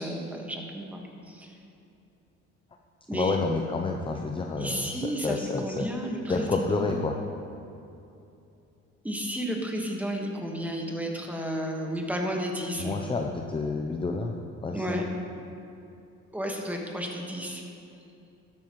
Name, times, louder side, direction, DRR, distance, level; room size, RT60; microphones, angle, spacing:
voice 1, 0.0-1.5 3.1-3.4 4.6-7.0 9.0-13.0 14.7-15.1 16.3-17.6, equal, 5° right, 0 dB, 1.5 m, -32 dB
voice 2, 3.1-5.9 6.3-7.2 12.8-14.4 14.6-15.0, left 3 dB, 15° left, 2 dB, 0.6 m, -29 dB
13.0 x 11.5 x 3.1 m, 2.7 s
cardioid pair, 110°, 30 cm